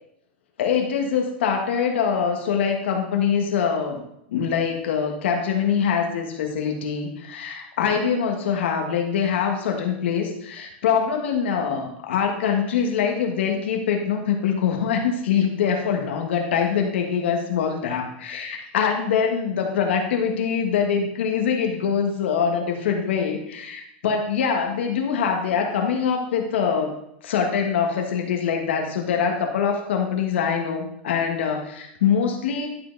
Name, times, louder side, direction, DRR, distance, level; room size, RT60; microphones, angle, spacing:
voice 1, 0.6-4.0 4.3-26.9 27.2-32.7, left 7 dB, 80° left, 3 dB, 1.6 m, -24 dB
11.0 x 4.7 x 4.0 m, 0.77 s
supercardioid pair, 155°, 6 cm